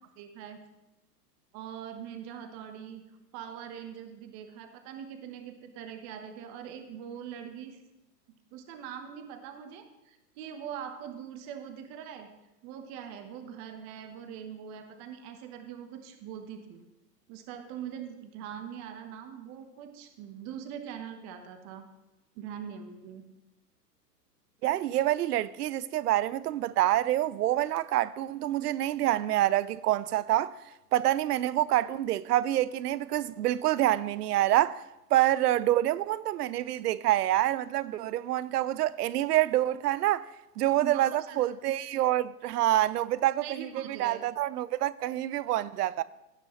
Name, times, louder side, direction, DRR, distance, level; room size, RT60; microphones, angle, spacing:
voice 1, 0.2-0.6 1.5-3.1 3.3-7.8 8.3-12.3 12.6-16.8 17.3-21.8 22.4-23.3 40.8-41.4 43.4-44.2, right 8 dB, 35° right, 1.0 m, -42 dB
voice 2, 24.6-30.6 30.9-34.8 35.1-40.3 40.6-46.0, right 14 dB, 70° right, 0.6 m, -27 dB
16.5 x 6.2 x 3.1 m
hypercardioid pair, 120°, 49 cm